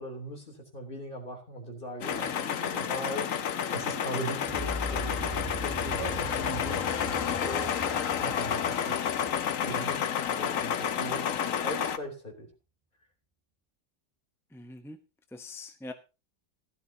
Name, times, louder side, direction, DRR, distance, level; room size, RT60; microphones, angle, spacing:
voice 1, 0.0-3.3 3.7-7.7 8.2-9.0 9.6-10.1 10.4-12.5, equal, 25° left, 2 dB, 3.5 m, -39 dB
sound 1, 2.0-12.0, left 8 dB, 55° left, 1.0 m, -30 dB
sound 2, 4.4-10.5, left 1 dB, 20° right, 0.8 m, -40 dB
voice 2, 14.5-15.0 15.3-15.9, left 2 dB, 5° left, 6 dB, 0.3 m, -43 dB
15.5 x 12.5 x 2.9 m, 0.29 s
omnidirectional pair, 2.1 m